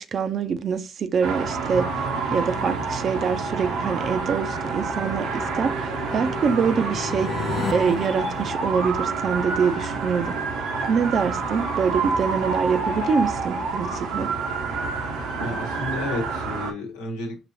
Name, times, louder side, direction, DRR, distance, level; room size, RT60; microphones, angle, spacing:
voice 1, 0.0-7.3 7.7-10.3 10.9-14.3, right 6 dB, 55° right, 0.6 m, -25 dB
sound 1, 1.2-16.7, right 4 dB, 80° right, 0.9 m, -28 dB
voice 2, 2.2-2.7 15.4-17.4, left 1 dB, 85° left, 1.0 m, -32 dB
sound 2, 3.9-9.4, left 5 dB, 55° left, 0.5 m, -35 dB
5.9 x 2.9 x 2.7 m
hypercardioid pair, 45°, 0 cm